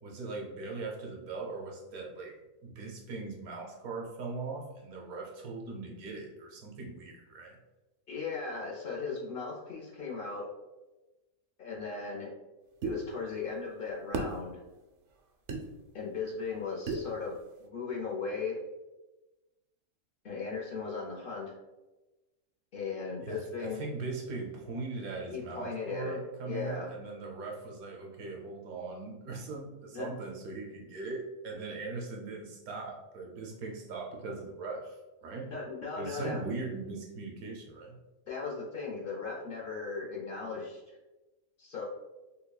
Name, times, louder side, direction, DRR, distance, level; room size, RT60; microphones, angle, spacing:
voice 1, 0.0-2.4 2.6-7.6 23.2-35.0 35.2-35.5 36.0-38.0, right 3 dB, 90° right, 0 dB, 1.2 m, -40 dB
voice 2, 8.1-10.5 11.6-12.3 12.8-14.6 15.9-18.6 20.2-21.5 22.7-23.9 25.3-26.2 26.4-26.9 29.9-30.1 35.5-36.4 38.3-41.0 41.6-41.8, left 4 dB, 50° left, -2 dB, 0.7 m, -37 dB
sound 1, 12.8-13.0 14.1-14.3 15.5-15.6 16.9-17.1, right 3 dB, 65° right, 0.8 m, -32 dB
5.4 x 2.3 x 2.2 m, 1.1 s
omnidirectional pair, 1.5 m